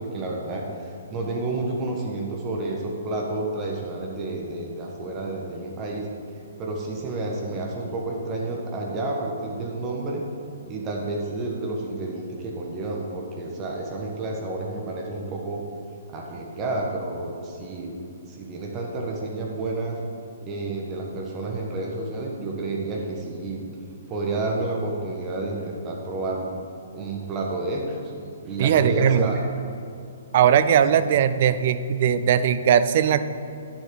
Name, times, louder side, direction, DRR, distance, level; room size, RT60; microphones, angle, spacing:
voice 1, 0.0-6.1 6.6-10.2 10.7-15.6 16.1-17.9 18.2-20.0 20.4-23.8 24.1-26.5 26.9-28.1 28.4-29.4 30.9-31.0, right 2 dB, 25° right, -1 dB, 1.4 m, -30 dB
voice 2, 28.6-29.3 30.3-33.2, right 8 dB, 45° right, 12 dB, 0.5 m, -19 dB
9.7 x 7.6 x 5.2 m, 2.7 s
figure-of-eight pair, 120°, 0 cm